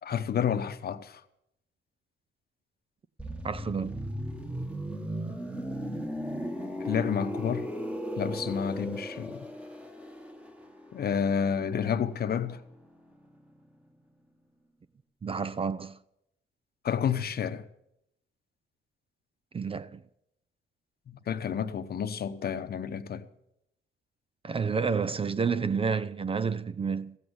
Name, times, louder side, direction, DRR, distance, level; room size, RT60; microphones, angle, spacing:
voice 1, 0.0-1.2 6.8-7.7 8.2-9.5 10.9-12.6 16.8-17.6 21.1-23.3, left 7 dB, 50° left, 0.9 m, -30 dB
sound 1, 3.2-12.9 13.1-13.3, equal, 5° right, 1.5 m, -37 dB
voice 2, 3.4-4.0 15.2-16.0 19.5-20.0 24.4-27.2, right 5 dB, 30° right, 0.5 m, -30 dB
15.5 x 8.0 x 7.0 m
cardioid pair, 90°, 20 cm